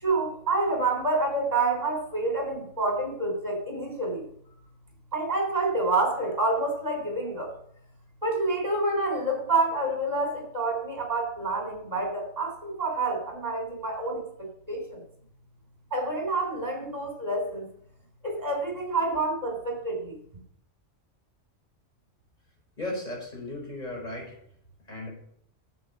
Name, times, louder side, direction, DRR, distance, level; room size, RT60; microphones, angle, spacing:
voice 1, 0.0-4.3 5.1-7.5 8.2-15.0 15.9-17.6 18.2-20.2, right 2 dB, 30° right, 1 dB, 3.7 m, -28 dB
voice 2, 22.8-24.4 24.9-25.1, left 1 dB, 35° left, -3 dB, 4.8 m, -35 dB
10.5 x 8.0 x 5.4 m, 0.68 s
omnidirectional pair, 1.2 m